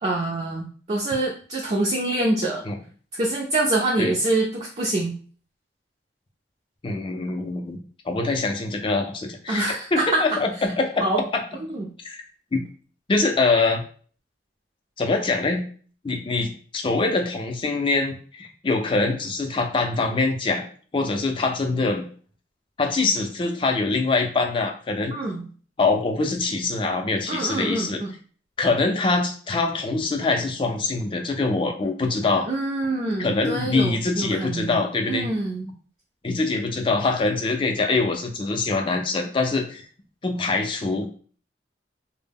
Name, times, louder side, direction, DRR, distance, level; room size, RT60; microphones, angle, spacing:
voice 1, 0.0-2.6 3.1-5.1 9.5-10.2 11.0-11.2 11.7-11.9 25.1-25.4 27.3-28.1 32.5-35.7, right 2 dB, 35° right, -3 dB, 0.4 m, -25 dB
voice 2, 6.8-7.8 8.1-11.1 11.3-11.4 12.0-12.2 12.5-12.6 13.1-13.8 15.0-15.6 16.0-20.7 20.9-22.0 22.8-25.1 25.8-28.0 28.6-32.5 33.2-35.3 36.2-39.8 40.2-41.1, left 3 dB, 30° left, 4 dB, 0.4 m, -24 dB
2.1 x 2.0 x 3.4 m, 0.42 s
head